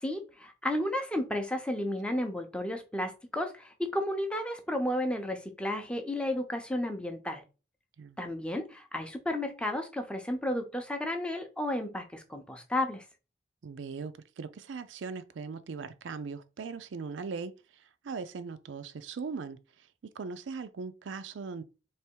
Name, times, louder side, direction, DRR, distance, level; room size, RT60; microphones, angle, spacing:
voice 1, 0.0-7.4 8.2-13.0, left 1 dB, 5° left, 0.6 m, -33 dB
voice 2, 13.6-21.6, right 5 dB, 85° right, 0.4 m, -40 dB
3.4 x 3.0 x 4.5 m
head